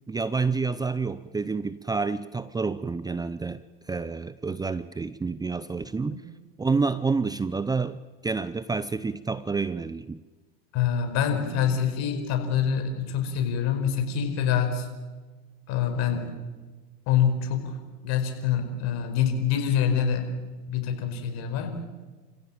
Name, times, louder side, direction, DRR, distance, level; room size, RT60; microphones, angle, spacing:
voice 1, 0.1-6.2 6.6-10.2, right 4 dB, 15° right, 15 dB, 0.7 m, -29 dB
voice 2, 10.7-14.9 15.7-16.4 17.1-17.8 18.0-20.4 20.7-21.8, left 8 dB, 60° left, 6 dB, 4.9 m, -26 dB
29.0 x 16.0 x 8.8 m, 1.3 s
supercardioid pair, 100°, 30 cm